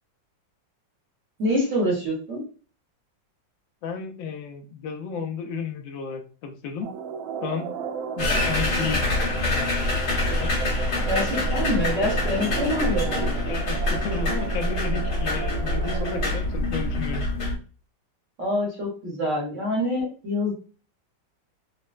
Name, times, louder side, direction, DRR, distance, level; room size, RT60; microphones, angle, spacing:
voice 1, 1.4-2.4 11.1-13.2 18.4-20.5, left 1 dB, 50° right, -4 dB, 1.1 m, -26 dB
voice 2, 3.8-6.9 7.4-7.8 8.2-9.0 9.5-9.7 10.4-10.6 13.2-17.2, left 5 dB, 75° left, 4 dB, 1.2 m, -33 dB
sound 1, 6.8-16.4, right 6 dB, 85° right, 1.4 m, -34 dB
sound 2, 8.2-17.6, left 1 dB, 60° left, 1.7 m, -25 dB
4.1 x 2.1 x 2.3 m, 0.37 s
omnidirectional pair, 2.1 m